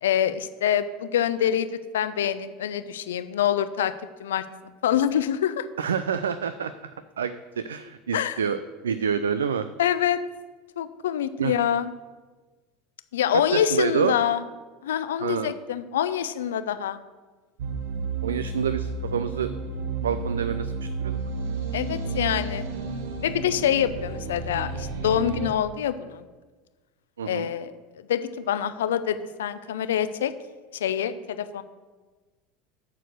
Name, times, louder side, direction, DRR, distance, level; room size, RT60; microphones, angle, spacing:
voice 1, 0.0-3.9 4.2-4.4 4.8-5.7 8.1-8.4 9.8-10.2 10.8-11.9 13.1-14.4 14.8-17.0 21.7-22.6 23.2-26.2 27.3-27.7 28.1-30.3 30.7-31.6, left 10 dB, 80° left, 12 dB, 0.5 m, -25 dB
voice 2, 5.8-6.9 7.2-9.7 11.4-11.5 13.3-14.1 15.2-15.5 18.2-19.5 20.0-21.2 27.2-27.5, right 7 dB, 85° right, 13 dB, 0.3 m, -28 dB
sound 1, 17.6-25.5, right 4 dB, 70° right, 0.9 m, -31 dB
11.5 x 4.5 x 6.4 m, 1.3 s
hypercardioid pair, 80°, 0 cm